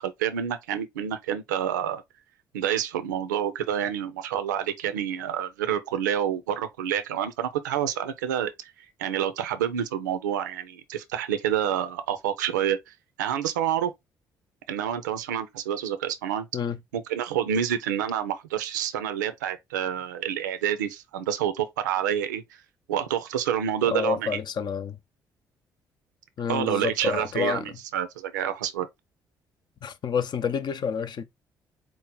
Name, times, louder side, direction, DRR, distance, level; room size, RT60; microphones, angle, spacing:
voice 1, 0.0-2.0 2.5-8.5 9.0-12.8 13.2-13.9 14.7-16.5 16.9-22.4 22.9-24.4 26.5-28.9, right 9 dB, 85° right, 0.4 m, -28 dB
voice 2, 23.8-25.0 26.4-27.6 29.8-31.2, left 6 dB, 50° left, 0.6 m, -29 dB
4.5 x 2.0 x 3.8 m
hypercardioid pair, 45°, 10 cm